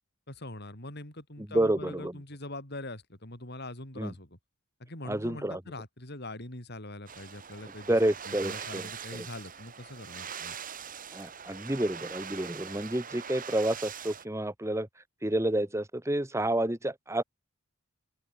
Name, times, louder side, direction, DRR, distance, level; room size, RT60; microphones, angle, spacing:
voice 1, 0.3-4.4 4.8-8.0 8.2-10.6, left 1 dB, 50° left, 5.8 m, -43 dB
voice 2, 1.5-2.1 4.0-4.1 5.1-5.6 7.9-8.9 11.1-14.9 15.2-17.2, right 1 dB, 15° right, 1.5 m, -29 dB
sound 1, 7.1-14.2, right 7 dB, 40° right, 3.4 m, -42 dB
open air
head